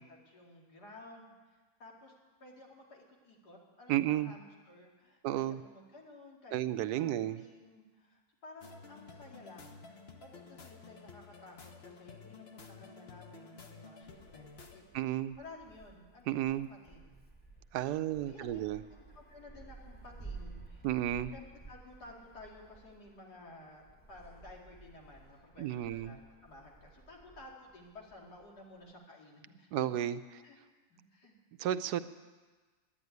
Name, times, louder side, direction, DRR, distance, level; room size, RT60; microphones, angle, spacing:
voice 1, 0.0-2.1 2.4-14.4 14.7-15.0 15.4-17.2 17.9-18.6 18.9-20.9 21.3-29.9 30.4-30.6 30.9-31.4, left 2 dB, 80° left, -1 dB, 3.0 m, -54 dB
voice 2, 3.9-4.3 5.2-5.6 6.5-7.4 14.9-15.4 16.3-16.7 17.7-18.8 20.8-21.3 25.6-26.2 29.7-30.2 31.6-32.0, right 12 dB, 90° right, 13 dB, 1.2 m, -32 dB
sound 1, 8.6-14.8, left 4 dB, 45° left, 1.2 m, -52 dB
Wind, 14.0-28.9, right 3 dB, 5° left, 1.1 m, -54 dB
11.0 x 10.5 x 9.4 m, 1.3 s
omnidirectional pair, 1.7 m